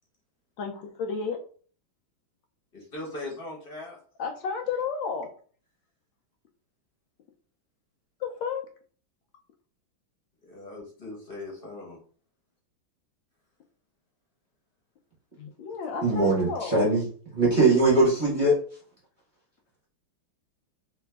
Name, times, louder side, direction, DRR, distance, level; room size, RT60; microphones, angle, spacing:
voice 1, 0.6-1.4 4.2-5.3 8.2-8.6 15.4-16.8, left 5 dB, 75° left, 3 dB, 1.3 m, -32 dB
voice 2, 2.7-4.0 10.4-12.0, left 2 dB, 35° left, -3 dB, 1.2 m, -39 dB
voice 3, 16.0-17.0 17.3-18.6, right 2 dB, 30° right, -6 dB, 1.1 m, -21 dB
3.3 x 2.9 x 3.4 m, 0.43 s
omnidirectional pair, 2.1 m